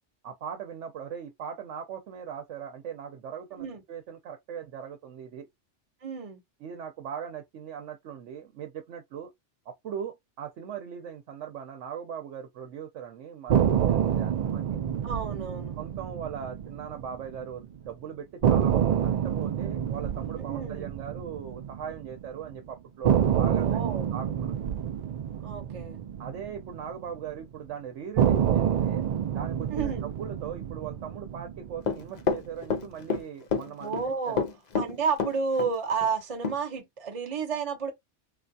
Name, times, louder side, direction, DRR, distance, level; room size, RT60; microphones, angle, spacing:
voice 1, 0.2-5.5 6.6-9.3 9.7-14.8 15.8-23.8 24.1-24.7 26.2-29.0 29.3-34.0 34.3-34.5, right 8 dB, 90° right, 1.0 m, -40 dB
voice 2, 6.0-6.4 15.0-15.8 20.4-20.9 23.4-24.1 25.4-26.0 29.7-30.1 33.8-34.4 34.8-37.9, right 5 dB, 35° right, 0.8 m, -31 dB
sound 1, 13.5-17.6 17.9-18.0 18.4-22.5 23.0-27.4 28.2-32.5, right 9 dB, 70° right, 0.4 m, -28 dB
Run, 31.9-33.2 33.5-34.1 34.4-35.7 36.0-36.1 36.4-36.6, left 5 dB, 50° left, 0.5 m, -28 dB
3.3 x 2.4 x 2.7 m
omnidirectional pair, 1.2 m